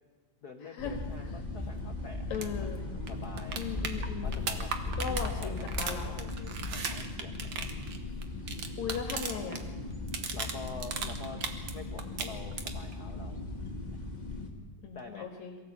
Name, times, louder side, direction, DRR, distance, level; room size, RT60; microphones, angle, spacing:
voice 1, 0.4-2.8 3.1-3.6 4.2-7.8 10.3-11.4 11.7-13.4 14.9-15.3, left 5 dB, 85° left, 5 dB, 0.8 m, -47 dB
sound 1, 0.8-14.5, left 2 dB, 15° left, 1.8 m, -38 dB
voice 2, 2.3-2.8 3.6-4.5 5.0-6.2 8.8-9.6 14.8-15.6, left 6 dB, 65° left, 4 dB, 2.9 m, -37 dB
sound 2, 2.3-2.5 2.7-2.8 3.1-9.6 9.9-11.7 12.0-12.9 15.0-15.1, right 5 dB, 50° right, 1.7 m, -37 dB
23.0 x 15.0 x 8.5 m, 1.5 s
omnidirectional pair, 3.5 m